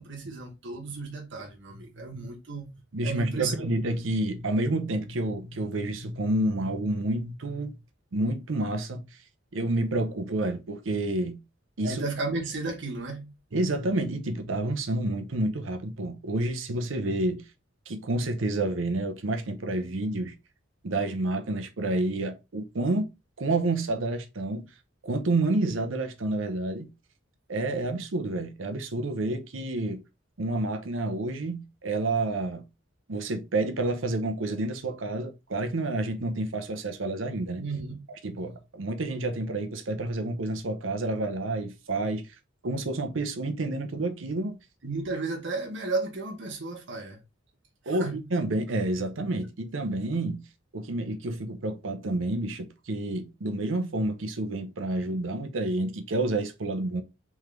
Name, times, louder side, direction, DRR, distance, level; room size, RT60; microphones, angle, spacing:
voice 1, 0.0-2.7 3.0-3.7 11.8-13.3 37.6-38.0 44.8-47.2 47.8-48.2, right 3 dB, 65° right, 1.1 m, -33 dB
voice 2, 1.8-2.2 2.9-7.8 8.1-9.0 9.5-11.4 11.8-12.0 13.5-17.4 17.9-20.3 20.8-23.1 23.4-24.7 25.0-26.9 27.5-30.0 30.4-32.6 33.1-37.7 38.2-42.3 42.6-44.6 47.9-50.4 50.7-57.0, right 2 dB, 90° right, 0.7 m, -29 dB
3.6 x 3.2 x 3.3 m
head